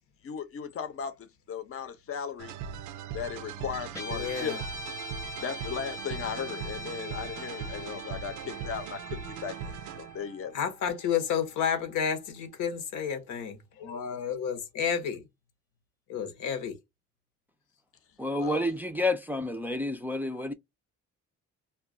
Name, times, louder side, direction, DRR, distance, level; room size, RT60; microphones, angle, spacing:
voice 1, 0.2-2.6 3.1-4.6 5.4-10.6 18.3-18.7, left 7 dB, 50° left, 0.7 m, -37 dB
sound 1, 2.4-10.3, right 7 dB, 85° right, 0.5 m, -40 dB
Guitar, 3.9-12.4, left 1 dB, 10° left, 0.8 m, -43 dB
voice 2, 4.1-4.6 10.5-15.2 16.1-16.8, left 7 dB, 90° left, 0.9 m, -31 dB
voice 3, 18.2-20.5, left 1 dB, 5° right, 0.4 m, -29 dB
2.3 x 2.2 x 3.6 m
cardioid pair, 90°, 30 cm